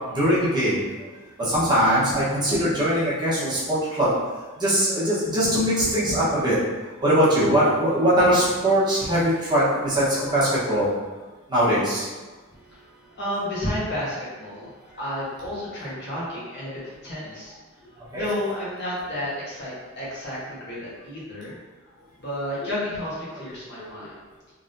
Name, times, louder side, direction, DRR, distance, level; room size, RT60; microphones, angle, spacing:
voice 1, 0.1-0.8 1.4-4.1 4.6-6.6 7.0-10.9 11.5-12.0 18.1-18.3 23.8-24.1, equal, 20° right, -10 dB, 1.1 m, -21 dB
voice 2, 12.5-17.5 18.1-21.6 22.2-24.2, left 1 dB, 50° left, -8 dB, 1.3 m, -31 dB
3.6 x 3.4 x 2.6 m, 1.3 s
head